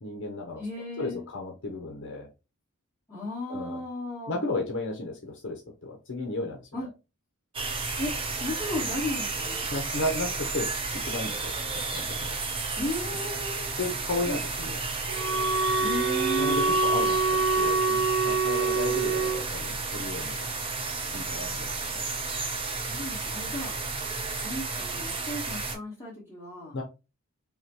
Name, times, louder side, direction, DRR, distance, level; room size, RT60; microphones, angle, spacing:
voice 1, 0.0-0.6 1.0-2.3 3.5-3.8 4.3-6.7 9.7-10.7 11.0-12.4 13.8-14.8 16.4-20.5 21.1-22.0 26.7-26.8, left 2 dB, 60° left, 1 dB, 0.8 m, -34 dB
voice 2, 0.6-1.2 3.1-4.4 6.7-6.9 8.0-8.1 8.4-9.7 12.7-13.7 14.3-14.4 15.8-16.7 22.7-23.7 24.4-26.8, left 1 dB, 15° left, -7 dB, 1.3 m, -35 dB
sound 1, 7.5-25.8, right 3 dB, 25° right, 0.7 m, -32 dB
Wind instrument woodwind instrument, 15.1-19.4, right 3 dB, 60° right, 0.6 m, -25 dB
5.6 x 2.2 x 2.9 m, 0.29 s
head